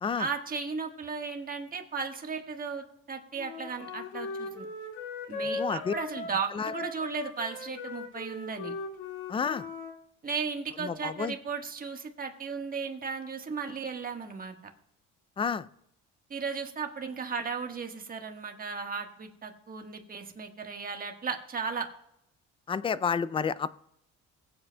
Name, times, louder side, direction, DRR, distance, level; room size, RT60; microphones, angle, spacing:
voice 1, 0.2-4.7 5.3-8.7 10.2-14.5 16.3-21.9, right 5 dB, 30° right, 4 dB, 1.4 m, -35 dB
Wind instrument woodwind instrument, 3.4-9.9, left 3 dB, 65° left, 2.0 m, -38 dB
voice 2, 5.6-5.9 6.6-6.7 9.3-9.6 10.8-11.3 15.4-15.6 22.7-23.7, left 6 dB, 20° left, 16 dB, 0.3 m, -30 dB
21.5 x 7.8 x 2.2 m, 0.75 s
cardioid pair, 120°, 31 cm